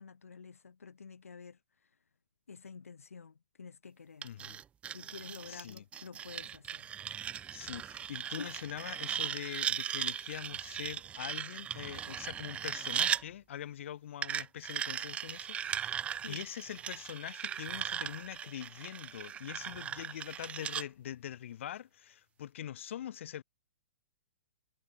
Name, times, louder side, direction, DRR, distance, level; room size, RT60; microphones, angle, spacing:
voice 1, 0.0-1.9 2.5-4.3 4.8-6.9 8.4-8.5 16.2-16.5, left 5 dB, 85° left, 0.7 m, -49 dB
voice 2, 4.2-4.6 5.5-5.8 7.5-23.4, left 10 dB, 60° left, 1.0 m, -43 dB
sound 1, 4.2-13.2 14.2-20.8, right 9 dB, 15° right, 0.4 m, -38 dB
sound 2, 15.7-21.5, left 10 dB, 20° left, 5.9 m, -71 dB
hypercardioid pair, 125°, 7 cm